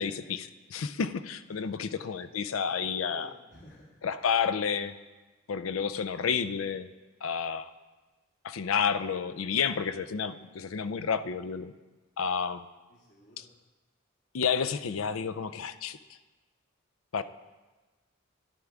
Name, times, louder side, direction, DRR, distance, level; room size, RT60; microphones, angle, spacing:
voice 1, 0.0-3.3 4.0-4.9 5.5-6.9 7.2-7.7 8.4-11.7 12.2-12.7 13.4-13.5 14.3-16.0 17.1-17.2, left 6 dB, 80° left, 12 dB, 0.5 m, -30 dB
voice 2, 1.5-2.1 3.1-3.9 12.9-13.5, equal, 60° left, -5 dB, 2.2 m, -54 dB
13.0 x 10.0 x 3.5 m, 1.2 s
head